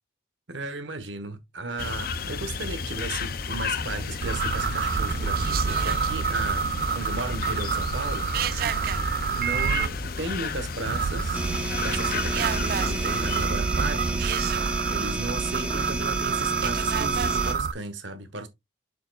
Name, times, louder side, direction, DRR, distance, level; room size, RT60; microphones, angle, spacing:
voice 1, 0.5-8.3 9.3-11.4 11.8-14.4 14.9-18.5, right 3 dB, 80° right, 1.2 m, -35 dB
sound 1, 1.8-13.5, left 4 dB, 50° left, 0.5 m, -33 dB
sound 2, 4.2-9.9 10.9-17.7, right 6 dB, 50° right, 0.4 m, -27 dB
sound 3, 11.3-17.5, right 2 dB, 5° right, 0.8 m, -31 dB
6.8 x 6.6 x 2.3 m
head